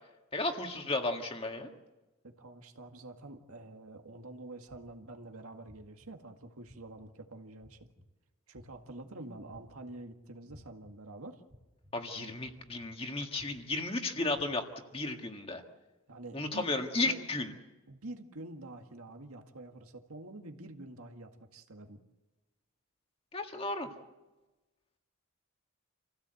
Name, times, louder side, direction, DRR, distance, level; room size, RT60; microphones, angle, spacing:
voice 1, 0.3-1.7 11.9-14.6 14.9-15.6 16.3-17.5 23.3-23.9, left 2 dB, 25° left, 4 dB, 1.7 m, -34 dB
voice 2, 2.2-7.9 8.5-11.4 12.2-12.3 16.1-16.8 17.1-17.3 17.9-22.0, right 2 dB, 80° right, 4 dB, 2.0 m, -47 dB
sound 1, 4.7-5.1 5.7-6.1 6.7-7.1 7.6-8.0 8.5-8.9 9.5-9.9 10.5-10.9 11.5-11.9 12.4-12.9 13.4-13.8 14.3-14.4, equal, 35° right, 3.4 m, -56 dB
27.5 x 16.0 x 7.9 m, 1.1 s
head